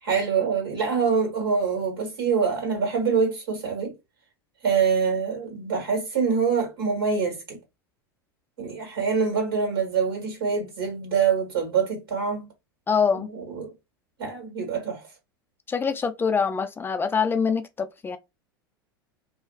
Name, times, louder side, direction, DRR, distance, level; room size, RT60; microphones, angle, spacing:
voice 1, 0.0-3.9 4.6-7.6 8.6-12.5 13.1-13.7 14.2-15.0, right 6 dB, 85° right, 1.6 m, -25 dB
voice 2, 12.9-13.3 15.7-18.2, left 6 dB, 20° left, 0.3 m, -24 dB
2.7 x 2.3 x 2.4 m
hypercardioid pair, 85°, 12 cm